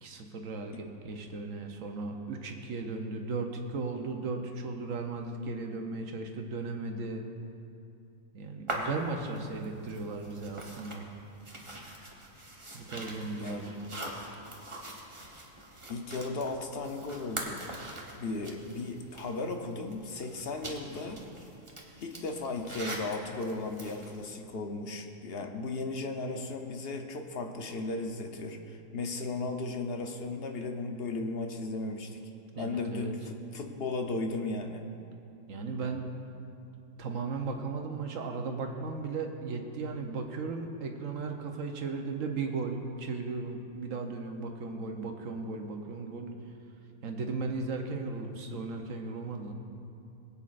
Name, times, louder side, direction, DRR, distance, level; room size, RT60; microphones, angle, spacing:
voice 1, 0.0-7.2 8.3-11.1 12.7-13.8 32.5-33.1 35.5-36.1 37.0-46.3 47.0-49.5, right 3 dB, 65° right, 3 dB, 1.2 m, -36 dB
sound 1, 8.7-24.2, right 1 dB, 25° right, 1.1 m, -43 dB
voice 2, 13.3-13.8 15.9-17.6 18.1-21.2 22.0-32.2 32.6-34.8, left 3 dB, 50° left, 4 dB, 0.9 m, -36 dB
21.0 x 8.6 x 2.5 m, 2.7 s
omnidirectional pair, 1.5 m